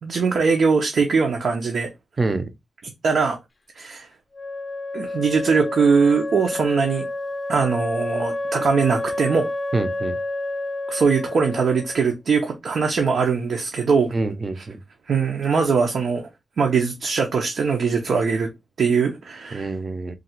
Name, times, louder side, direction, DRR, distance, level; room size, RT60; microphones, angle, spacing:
voice 1, 0.0-1.9 3.0-3.4 3.8-4.1 4.9-7.1 7.5-9.5 10.9-14.1 15.1-16.3 16.6-18.5 18.8-19.7, right 5 dB, 70° right, 0.7 m, -21 dB
voice 2, 2.2-2.5 9.7-10.2 14.1-14.8 19.5-20.1, right 3 dB, 25° right, 0.6 m, -26 dB
Wind instrument woodwind instrument, 4.3-12.1, left 2 dB, 30° left, 0.5 m, -29 dB
3.8 x 2.4 x 4.3 m
wide cardioid pair, 165°, 0 cm